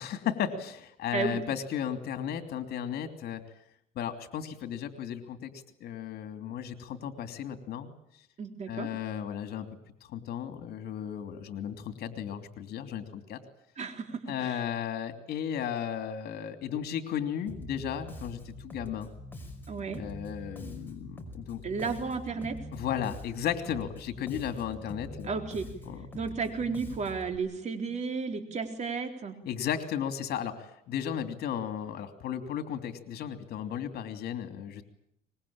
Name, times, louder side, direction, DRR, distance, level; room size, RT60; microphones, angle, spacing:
voice 1, 0.0-3.4 3.9-5.5 5.8-7.9 8.7-9.7 10.1-13.4 14.3-19.1 20.0-21.9 22.7-25.4 25.9-26.1 29.4-34.8, left 9 dB, 70° left, 8 dB, 3.0 m, -35 dB
voice 2, 1.1-1.4 8.4-8.9 13.8-14.6 19.7-20.0 21.6-22.6 25.3-25.7 26.1-29.4, right 5 dB, 45° right, 6 dB, 4.0 m, -33 dB
Bass guitar, 17.5-27.4, left 1 dB, 10° left, 5.2 m, -44 dB
24.0 x 21.5 x 8.8 m, 0.72 s
cardioid pair, 110°, 17 cm